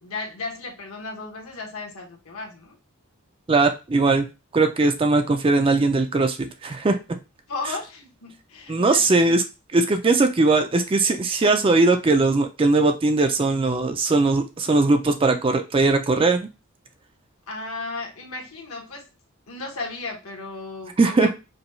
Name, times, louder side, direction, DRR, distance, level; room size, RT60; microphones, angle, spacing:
voice 1, 0.0-2.8 7.5-9.4 17.5-19.0 19.5-21.3, left 3 dB, 75° left, 0 dB, 1.3 m, -35 dB
voice 2, 3.5-7.2 8.7-9.4 9.7-16.5 21.0-21.3, right 3 dB, 25° right, 7 dB, 0.4 m, -20 dB
5.1 x 2.3 x 3.1 m, 0.28 s
head